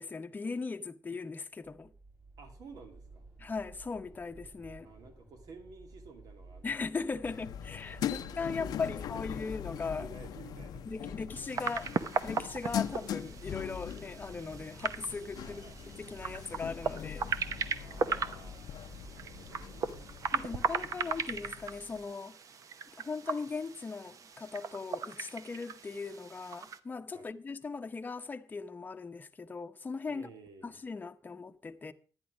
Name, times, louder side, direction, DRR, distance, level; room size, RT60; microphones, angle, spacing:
voice 1, 0.0-1.9 3.4-4.9 6.6-10.1 10.8-11.9 12.2-15.6 16.0-17.3 20.3-22.4 23.0-30.3 30.6-31.9, left 4 dB, 25° left, 0.7 m, -39 dB
sound 1, 1.6-20.3, right 3 dB, 35° right, 5.6 m, -54 dB
voice 2, 2.4-3.3 4.8-6.7 8.6-9.0 9.4-9.5 10.0-10.8 15.4-15.8 17.8-21.1 27.1-27.3 30.1-30.7, right 3 dB, 80° right, 2.4 m, -53 dB
sound 2, 7.2-22.0, left 10 dB, 85° left, 0.6 m, -42 dB
sound 3, 11.3-26.8, right 6 dB, 60° right, 0.8 m, -38 dB
10.5 x 10.5 x 5.0 m
cardioid pair, 105°, 6 cm